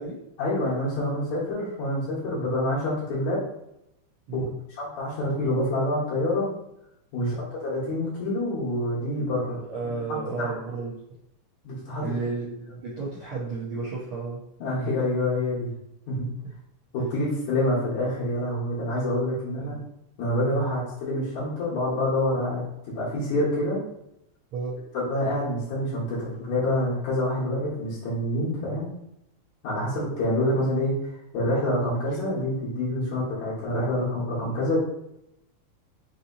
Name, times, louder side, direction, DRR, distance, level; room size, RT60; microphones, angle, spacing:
voice 1, 0.4-3.4 4.3-4.4 4.8-6.5 7.1-9.6 10.4-10.5 11.6-12.0 14.6-15.7 16.1-16.3 16.9-19.7 20.2-23.8 24.9-28.9 29.6-34.8, left 1 dB, 75° left, -9 dB, 2.4 m, -27 dB
voice 2, 9.1-10.9 12.0-14.4 19.4-19.8 20.5-20.7 24.5-24.8 33.0-33.2 33.9-34.0 34.4-34.6, right 4 dB, 75° right, -7 dB, 1.2 m, -33 dB
5.3 x 2.7 x 2.7 m, 0.83 s
omnidirectional pair, 3.4 m